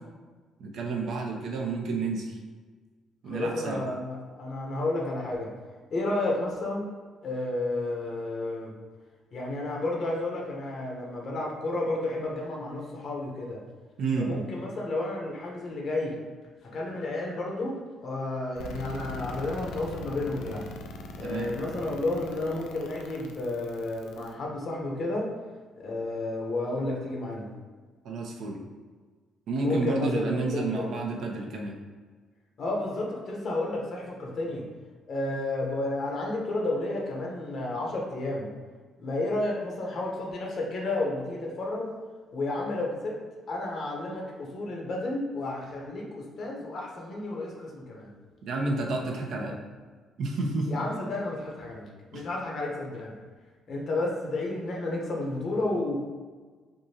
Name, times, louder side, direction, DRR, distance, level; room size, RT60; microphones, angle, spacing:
voice 1, 0.6-2.4 3.2-3.8 14.0-14.3 21.2-21.5 28.0-28.6 29.5-31.8 48.5-49.6 50.2-50.7 52.1-52.2, right 3 dB, 70° right, 0 dB, 0.6 m, -30 dB
voice 2, 3.3-5.5 5.9-6.9 7.2-8.7 9.3-13.6 14.2-16.2 16.7-17.7 18.0-20.7 21.2-25.3 25.8-27.5 29.6-30.9 32.6-34.6 35.1-38.5 39.0-41.9 42.3-43.2 43.5-48.1 50.7-53.1 53.7-56.0, left 2 dB, 60° left, -2 dB, 0.9 m, -31 dB
sound 1, 18.6-24.3, left 3 dB, 80° left, 0.3 m, -41 dB
3.6 x 2.6 x 2.8 m, 1.4 s
supercardioid pair, 60°, 0 cm